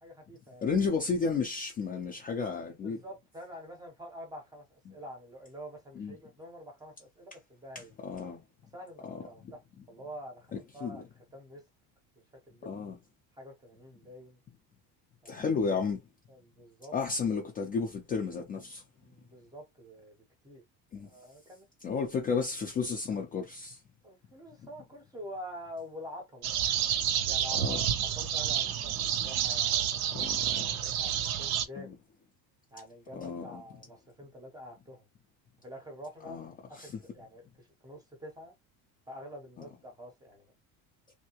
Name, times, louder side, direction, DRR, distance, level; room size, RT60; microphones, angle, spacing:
voice 1, 0.0-0.7 2.8-7.9 8.7-9.6 9.9-11.0 11.3-11.6 12.5-12.7 13.4-14.4 15.2-15.5 16.3-16.9 19.0-20.1 20.4-20.6 21.0-21.7 24.0-26.5 27.2-27.8 28.1-30.3 30.5-31.9 32.7-35.0 35.6-36.4 36.7-38.5 39.1-40.5, equal, 10° right, 0.7 m, -47 dB
voice 2, 0.6-3.0 6.0-6.2 7.7-8.4 9.0-9.2 10.5-11.0 12.7-13.0 15.3-16.0 16.9-18.8 20.9-21.1 21.8-23.8 24.6-24.7 27.5-27.8 30.1-30.7 31.8-31.9 33.1-33.6 36.3-36.5 36.8-36.9, left 5 dB, 20° left, 0.4 m, -32 dB
sound 1, 26.4-31.6, right 10 dB, 40° right, 0.4 m, -29 dB
3.2 x 2.8 x 2.9 m
cardioid pair, 175°, 41 cm